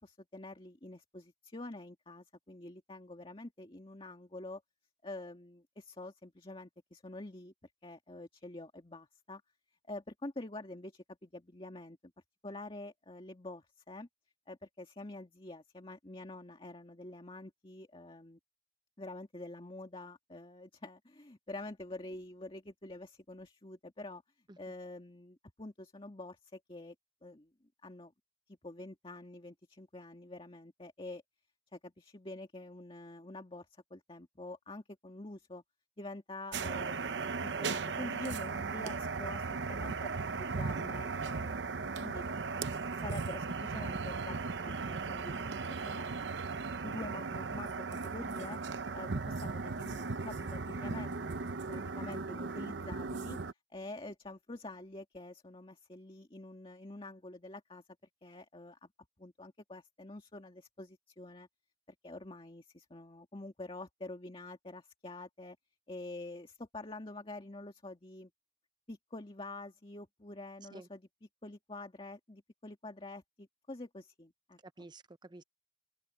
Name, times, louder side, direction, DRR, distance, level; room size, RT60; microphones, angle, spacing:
voice 1, 0.0-4.6 5.0-7.5 7.8-9.4 9.9-12.1 12.4-14.1 14.5-18.4 19.0-24.2 24.6-27.0 27.2-27.5 27.8-28.1 28.5-31.2 31.7-33.7 33.9-35.6 36.0-42.2 42.9-46.1 46.8-48.6 48.9-51.3 51.7-53.4 53.7-57.8 58.2-58.9 59.2-61.5 61.9-65.6 65.9-68.3 68.9-71.1 71.4-74.9, left 2 dB, 30° left, 2.0 m, -47 dB
sound 1, 36.5-53.5, right 4 dB, 70° right, 0.8 m, -37 dB
voice 2, 45.3-45.7 70.7-70.9 74.6-75.4, right 2 dB, 25° right, 0.7 m, -52 dB
open air
head